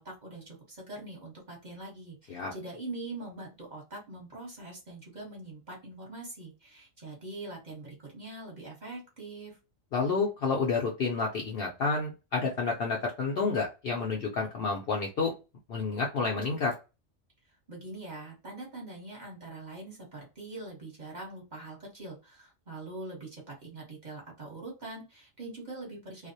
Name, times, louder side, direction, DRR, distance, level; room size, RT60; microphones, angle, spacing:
voice 1, 0.0-9.6 17.7-26.3, right 2 dB, 40° right, -2 dB, 1.0 m, -43 dB
voice 2, 9.9-15.3 15.7-16.7, left 4 dB, 60° left, 0 dB, 0.6 m, -29 dB
2.4 x 2.0 x 2.6 m, 0.28 s
omnidirectional pair, 1.3 m